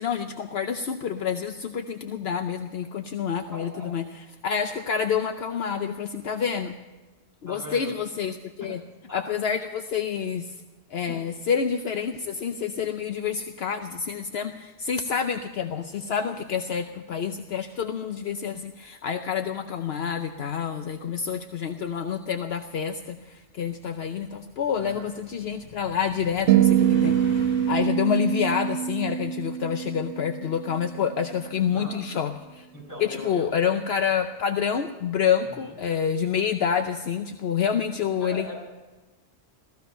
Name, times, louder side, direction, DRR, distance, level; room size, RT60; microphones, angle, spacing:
voice 1, 0.0-4.0 4.4-6.7 7.4-8.8 9.1-10.5 10.9-32.7 33.0-38.5, left 7 dB, 70° left, 7 dB, 1.0 m, -28 dB
voice 2, 3.5-3.9 7.5-8.0 8.6-8.7 9.1-9.2 11.1-11.3 24.8-25.1 31.7-31.9 32.7-33.5 35.4-35.8 38.2-38.6, left 2 dB, 15° left, -4 dB, 6.6 m, -40 dB
sound 1, 22.7-27.7, left 2 dB, 45° left, 3.2 m, -43 dB
sound 2, 26.5-30.8, right 10 dB, 80° right, 0.9 m, -24 dB
15.5 x 15.5 x 5.5 m, 1.2 s
omnidirectional pair, 1.1 m